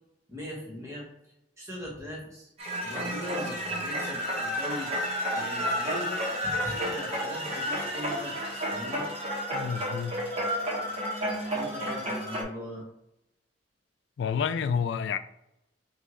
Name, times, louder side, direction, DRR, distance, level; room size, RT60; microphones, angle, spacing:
voice 1, 0.3-1.1 1.6-2.5 2.8-4.9 5.3-9.1 11.5-12.9, left 1 dB, 15° right, 1.5 m, -40 dB
sound 1, 2.6-12.4, equal, 35° right, 1.2 m, -31 dB
voice 2, 9.5-10.2 14.2-15.2, left 7 dB, 65° left, 0.3 m, -29 dB
5.4 x 2.6 x 3.2 m
head